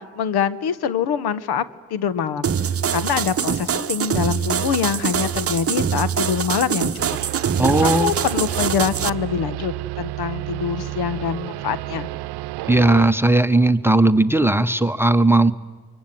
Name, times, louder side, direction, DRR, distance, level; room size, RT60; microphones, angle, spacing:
voice 1, 0.0-1.6 1.9-2.5 2.9-7.0 7.8-12.1, left 7 dB, 65° left, 15 dB, 1.5 m, -24 dB
sound 1, 2.4-9.1, right 8 dB, 35° right, 1.0 m, -24 dB
sound 2, 7.0-13.1, right 18 dB, 70° right, 0.9 m, -31 dB
voice 2, 7.6-8.1 12.7-15.5, right 2 dB, 5° right, 10 dB, 1.2 m, -17 dB
24.5 x 23.0 x 9.4 m, 1.5 s
hypercardioid pair, 60°, 41 cm